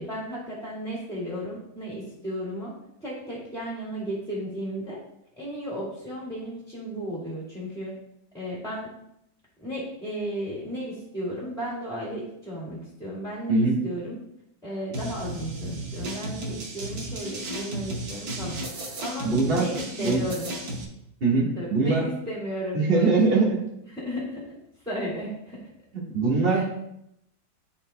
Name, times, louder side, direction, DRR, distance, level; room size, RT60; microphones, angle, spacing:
voice 1, 0.0-5.0 5.4-7.9 8.3-8.9 9.6-14.2 14.6-20.5 21.4-23.2 23.9-24.5 24.8-25.7 26.4-26.6, equal, ahead, -7 dB, 2.2 m, -34 dB
sound 1, 14.9-20.8, right 1 dB, 55° right, 1.5 m, -34 dB
voice 2, 19.2-19.7 20.0-20.2 21.2-22.0 22.7-23.6 26.1-26.6, right 3 dB, 30° right, -3 dB, 1.6 m, -22 dB
12.5 x 4.3 x 2.2 m, 0.80 s
omnidirectional pair, 2.0 m